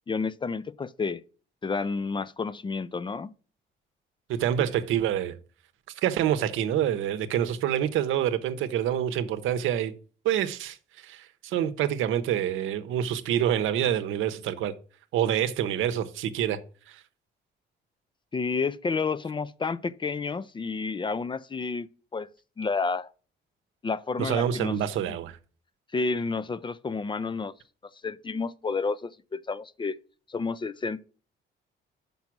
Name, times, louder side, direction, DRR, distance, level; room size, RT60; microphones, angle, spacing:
voice 1, 0.1-1.2 1.6-3.3 18.3-21.9 22.1-22.3 22.6-23.1 23.8-24.7 25.9-27.5 28.0-30.0 30.3-31.0, left 4 dB, 25° left, 0.4 m, -30 dB
voice 2, 4.3-5.4 6.0-9.9 10.2-14.7 15.1-16.6 16.9-17.0 24.2-25.4, right 10 dB, 85° right, 0.8 m, -27 dB
5.9 x 5.4 x 5.9 m
cardioid pair, 90°, 20 cm